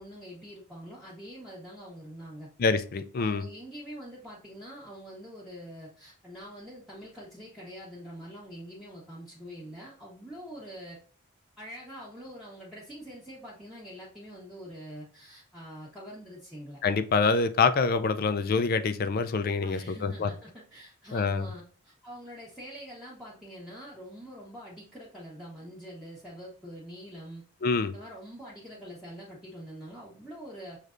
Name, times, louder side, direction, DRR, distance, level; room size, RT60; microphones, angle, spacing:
voice 1, 0.0-2.5 3.2-11.0 11.6-16.8 19.6-27.4 27.9-30.8, equal, ahead, -8 dB, 0.9 m, -45 dB
voice 2, 2.6-3.5 16.8-20.3 21.1-21.5 27.6-27.9, left 4 dB, 45° left, 11 dB, 0.4 m, -26 dB
6.5 x 3.2 x 2.4 m, 0.41 s
head